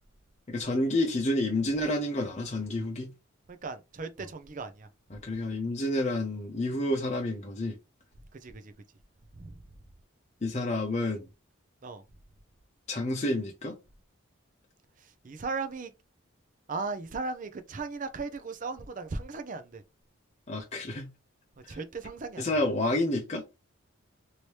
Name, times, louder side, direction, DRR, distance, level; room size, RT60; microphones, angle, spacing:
voice 1, 0.5-3.1 5.1-7.7 10.4-11.2 12.9-13.8 20.5-21.1 21.7-21.8 22.4-23.4, left 1 dB, 30° left, 0.6 m, -29 dB
voice 2, 3.5-4.9 8.3-8.7 9.4-9.6 11.8-12.0 15.0-15.9 16.7-19.8 21.7-22.5, right 4 dB, 40° right, 0.4 m, -37 dB
3.1 x 2.8 x 3.1 m
head